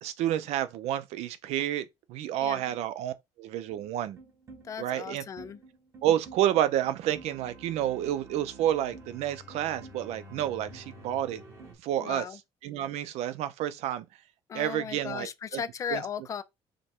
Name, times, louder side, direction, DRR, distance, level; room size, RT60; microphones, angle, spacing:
voice 1, 0.0-4.2 4.8-5.2 6.0-11.4 11.8-12.2 12.6-14.0 14.5-15.6 15.9-16.0, right 11 dB, 75° right, 0.6 m, -30 dB
sound 1, 3.7-11.7, right 1 dB, 25° right, 1.2 m, -49 dB
voice 2, 4.6-5.6 12.0-12.4 14.5-16.4, left 7 dB, 30° left, 0.4 m, -36 dB
5.0 x 2.2 x 4.4 m
cardioid pair, 170°, 11 cm